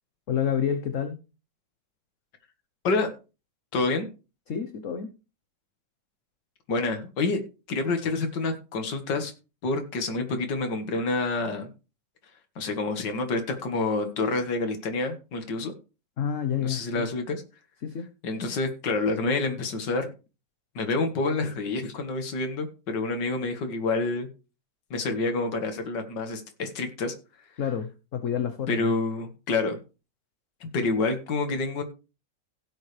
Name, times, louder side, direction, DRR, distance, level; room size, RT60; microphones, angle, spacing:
voice 1, 0.3-1.2 4.5-5.1 16.2-17.1 17.8-18.1 27.6-28.9, left 8 dB, 50° left, 8 dB, 1.2 m, -29 dB
voice 2, 3.7-4.1 6.7-9.3 9.6-11.7 12.6-15.7 16.6-17.4 18.2-20.1 20.8-24.3 24.9-27.1 28.7-29.8 30.6-31.8, left 3 dB, 70° left, 6 dB, 2.3 m, -28 dB
16.5 x 7.4 x 3.3 m, 0.31 s
omnidirectional pair, 2.0 m